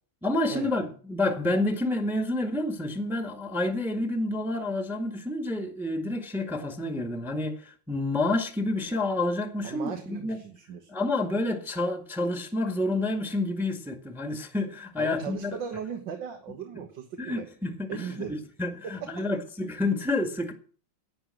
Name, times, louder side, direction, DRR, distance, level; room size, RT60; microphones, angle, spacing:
voice 1, 0.2-10.4 10.9-15.6 17.2-20.5, left 2 dB, ahead, 1.6 m, -29 dB
voice 2, 9.6-10.9 15.0-17.5 17.9-18.4 18.8-19.3, right 7 dB, 65° right, 2.0 m, -37 dB
11.5 x 9.5 x 7.7 m
omnidirectional pair, 2.2 m